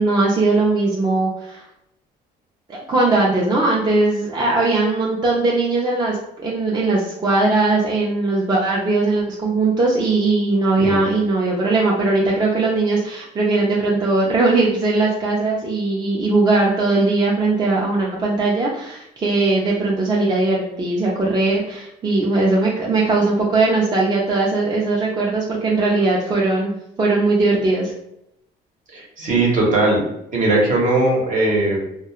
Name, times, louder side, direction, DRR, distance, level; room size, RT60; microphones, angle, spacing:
voice 1, 0.0-1.6 2.7-26.7 27.0-27.9, right 3 dB, 25° right, -3 dB, 0.4 m, -19 dB
voice 2, 28.9-30.0 30.3-31.8, right 2 dB, 50° right, -2 dB, 1.0 m, -18 dB
2.3 x 2.2 x 2.9 m, 0.79 s
cardioid pair, 110°, 17 cm